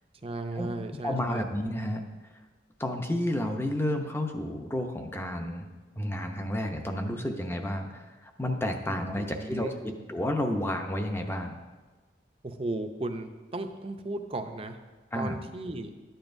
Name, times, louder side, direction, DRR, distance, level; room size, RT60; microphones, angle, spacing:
voice 1, 0.2-1.5 8.9-9.9 12.4-14.8 15.1-15.9, right 2 dB, 30° right, 6 dB, 0.6 m, -36 dB
voice 2, 1.0-2.0 2.8-5.6 6.0-11.6 15.1-15.4, left 1 dB, 15° left, 4 dB, 0.7 m, -31 dB
12.5 x 8.9 x 2.6 m, 1.3 s
head